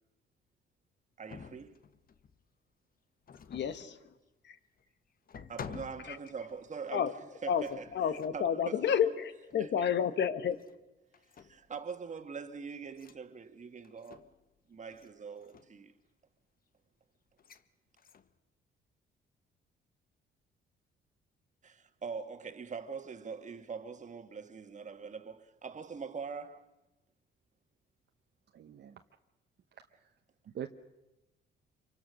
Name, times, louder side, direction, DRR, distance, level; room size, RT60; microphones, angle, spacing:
voice 1, 1.2-1.8 5.5-7.1 7.4-7.9 8.3-9.0 9.6-9.9 11.4-14.3 14.7-15.9 21.6-26.7, right 5 dB, 35° right, 1.7 m, -43 dB
sound 1, 1.3-2.4 3.2-4.0 4.8-4.9 5.3-6.8 7.6-8.5 9.5-9.7 10.4-10.8 11.1-11.8 12.9-13.2 13.8-14.5 14.9-15.1 15.4-15.8 17.4-17.6 18.0-18.4, left 6 dB, 45° left, 1.2 m, -50 dB
voice 2, 3.3-4.1 4.4-4.6 6.0-6.2 6.9-7.2 7.5-10.6, left 8 dB, 60° left, 1.4 m, -31 dB
voice 3, 28.5-29.0 29.7-30.1 30.5-30.7, right 9 dB, 60° right, 1.0 m, -44 dB
26.0 x 24.0 x 6.4 m
cardioid pair, 90°, 20 cm